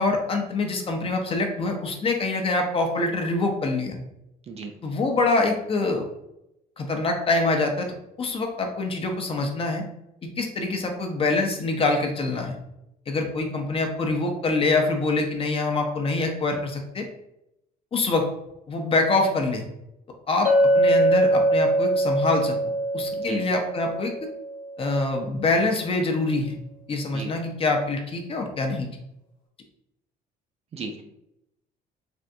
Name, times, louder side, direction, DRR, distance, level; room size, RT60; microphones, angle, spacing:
voice 1, 0.0-4.0 4.8-6.1 6.8-7.9 8.2-9.8 10.2-12.6 13.1-17.0 17.9-18.3 18.7-19.6 20.3-20.5 20.7-22.6 22.9-24.3 24.8-26.6 26.9-28.9, left 3 dB, 35° left, 3 dB, 0.5 m, -25 dB
voice 2, 4.5-4.7 23.2-23.4 27.1-27.3 30.7-31.0, right 4 dB, 40° right, 5 dB, 0.5 m, -35 dB
Chink clink, 20.5-24.9, right 1 dB, 60° left, 0.9 m, -22 dB
3.4 x 2.5 x 2.6 m, 0.84 s
cardioid pair, 110°, 17 cm